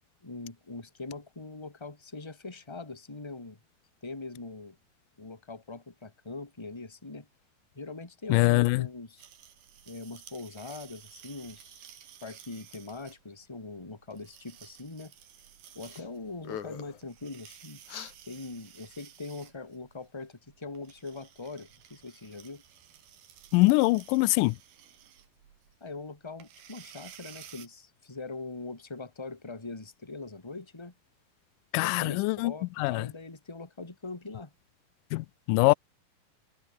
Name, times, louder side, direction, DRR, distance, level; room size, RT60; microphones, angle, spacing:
voice 1, 0.2-3.6 4.0-4.8 5.2-7.3 7.7-9.3 9.9-11.9 12.2-15.1 15.7-17.8 18.3-22.6 25.8-30.9 31.8-34.5 35.7-35.8, left 3 dB, 10° left, 2.1 m, -42 dB
voice 2, 8.3-8.9 23.5-24.6 31.7-33.1 35.1-35.7, left 23 dB, 85° left, 1.8 m, -24 dB
sound 1, 9.2-27.7, right 10 dB, 80° right, 4.2 m, -54 dB
sound 2, 15.8-16.1 16.4-17.0 17.9-18.1, left 8 dB, 55° left, 3.3 m, -41 dB
omnidirectional pair, 4.3 m